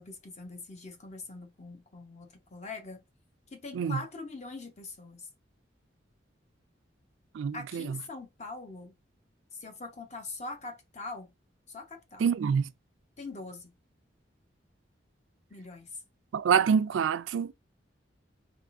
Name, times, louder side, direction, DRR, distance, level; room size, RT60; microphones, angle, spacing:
voice 1, 0.0-3.0 3.5-5.3 7.5-9.0 9.6-11.3 11.7-12.2 13.2-13.7 15.5-15.9, left 3 dB, 35° left, 0.8 m, -42 dB
voice 2, 7.3-8.0 12.2-12.7 16.3-17.5, right 7 dB, 90° right, 0.3 m, -26 dB
3.4 x 3.4 x 2.5 m
head